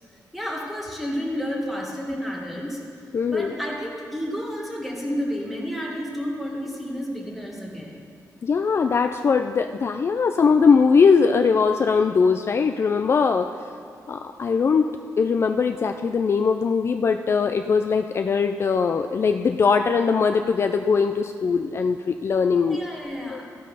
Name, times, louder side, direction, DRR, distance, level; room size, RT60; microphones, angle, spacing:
voice 1, 0.3-2.8 3.3-8.0 22.6-23.4, equal, ahead, -2 dB, 2.0 m, -31 dB
voice 2, 3.1-3.5 8.4-13.5 14.1-14.9 15.2-22.8 23.2-23.4, left 5 dB, 40° left, 6 dB, 0.3 m, -20 dB
15.0 x 5.3 x 5.5 m, 2.4 s
cardioid pair, 110°, 7 cm